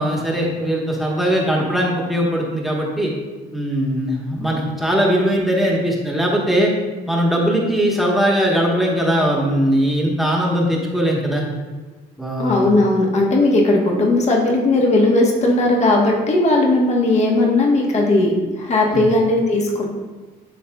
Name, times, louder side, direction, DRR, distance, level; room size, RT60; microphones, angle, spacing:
voice 1, 0.0-3.1 3.5-6.7 7.1-11.5 12.2-12.7 18.9-19.0, equal, ahead, -3 dB, 1.2 m, -20 dB
voice 2, 12.4-19.9, left 2 dB, 40° left, 0 dB, 1.2 m, -17 dB
11.0 x 4.1 x 2.3 m, 1.3 s
cardioid pair, 110°, 17 cm